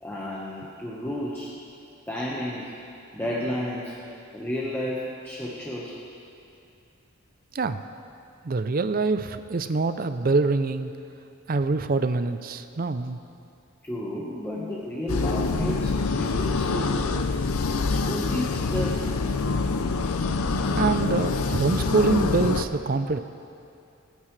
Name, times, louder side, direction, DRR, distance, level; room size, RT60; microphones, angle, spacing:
voice 1, 0.0-1.5 2.1-2.7 3.1-4.0 4.3-6.0 13.8-17.1 17.9-19.0, equal, 10° left, -6 dB, 1.3 m, -32 dB
voice 2, 8.4-10.9 11.5-13.2 20.7-23.2, right 3 dB, 40° right, 10 dB, 0.5 m, -25 dB
sound 1, 15.1-22.6, left 4 dB, 80° left, 0.6 m, -25 dB
27.0 x 9.5 x 3.3 m, 2.6 s
head